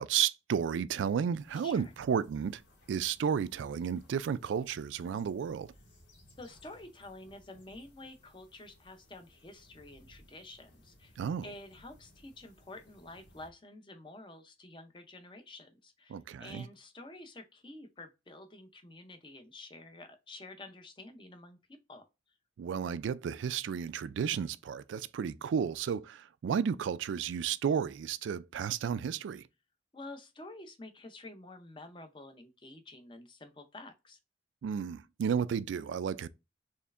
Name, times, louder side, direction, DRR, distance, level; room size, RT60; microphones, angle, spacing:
voice 1, 0.0-2.6 2.9-5.7 11.2-11.5 16.1-16.7 22.6-29.4 34.6-36.3, right 7 dB, 85° right, 0.3 m, -32 dB
sound 1, 1.4-13.5, left 1 dB, 80° left, 1.6 m, -62 dB
voice 2, 6.4-11.2 11.4-21.6 21.9-22.0 29.9-34.2, left 2 dB, 25° left, 0.6 m, -49 dB
4.3 x 3.1 x 2.4 m
head